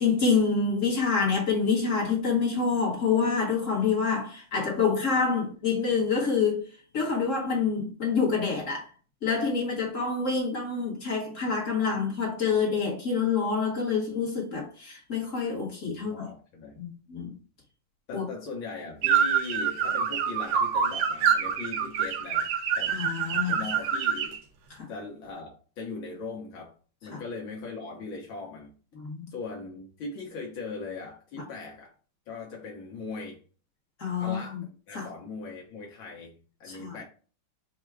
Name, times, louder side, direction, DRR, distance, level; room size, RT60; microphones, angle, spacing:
voice 1, 0.0-6.6 6.9-8.9 9.2-16.3 16.8-17.3 18.1-18.3 22.9-23.6 24.7-24.9 27.1-27.2 29.0-29.3 31.4-31.5 34.0-34.6 34.9-35.1 36.7-37.0, left 5 dB, 45° left, 1.3 m, -27 dB
voice 2, 15.9-16.8 18.1-23.0 23.4-24.4 24.9-26.7 27.0-28.7 29.3-31.9 32.3-33.4 34.2-37.0, left 3 dB, 70° left, 1.7 m, -39 dB
sound 1, 19.0-24.4, right 7 dB, 75° right, 1.6 m, -26 dB
4.8 x 2.2 x 4.5 m
omnidirectional pair, 2.3 m